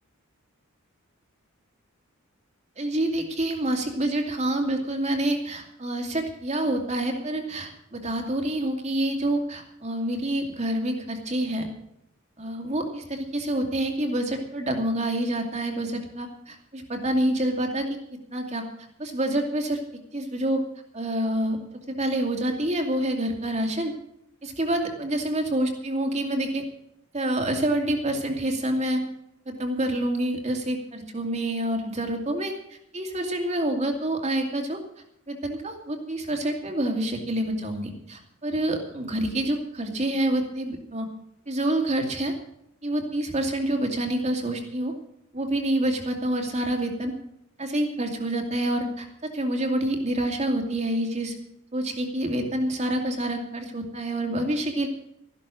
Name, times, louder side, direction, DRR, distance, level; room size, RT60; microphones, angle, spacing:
voice 1, 2.8-11.6 12.4-17.9 18.3-18.6 19.0-19.8 20.1-20.6 20.9-21.6 21.9-23.9 24.4-26.6 27.1-29.0 29.5-34.8 35.3-41.1 41.5-42.3 42.8-44.9 45.3-47.1 47.6-51.3 51.7-54.9, right 1 dB, 30° right, 3 dB, 2.5 m, -27 dB
14.0 x 12.0 x 6.2 m, 0.78 s
head